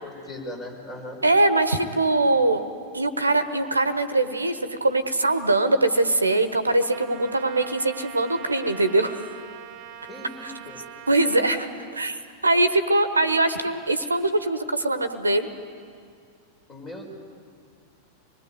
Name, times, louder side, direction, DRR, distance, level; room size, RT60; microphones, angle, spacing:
voice 1, 0.0-1.2 10.1-10.8 16.7-17.1, left 1 dB, 20° left, 1 dB, 4.6 m, -38 dB
voice 2, 1.2-2.7 2.9-9.2 10.4-10.5 11.1-11.7 11.9-12.2 12.4-15.5, right 2 dB, 80° right, 11 dB, 1.2 m, -22 dB
Trumpet, 6.9-11.6, right 10 dB, 35° right, 1.4 m, -42 dB
25.5 x 20.5 x 9.5 m, 2.3 s
figure-of-eight pair, 90°, 0 cm